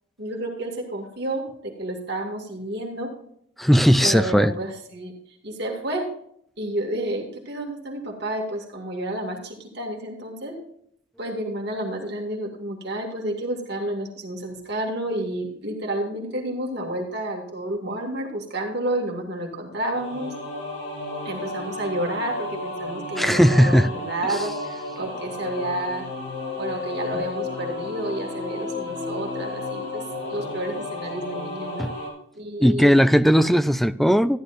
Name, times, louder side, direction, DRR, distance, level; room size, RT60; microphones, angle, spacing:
voice 1, 0.2-3.1 4.0-5.1 5.4-6.1 6.6-10.6 11.2-20.3 21.2-26.1 26.6-30.0 30.3-31.9 32.3-33.0, right 1 dB, 55° right, 1 dB, 2.3 m, -30 dB
voice 2, 3.6-4.5 23.2-23.9 24.3-24.4 31.8-31.9 32.6-34.4, equal, ahead, 12 dB, 0.3 m, -17 dB
sound 1, 19.9-32.1, left 2 dB, 60° left, 4.7 m, -33 dB
14.0 x 11.5 x 2.6 m, 0.67 s
head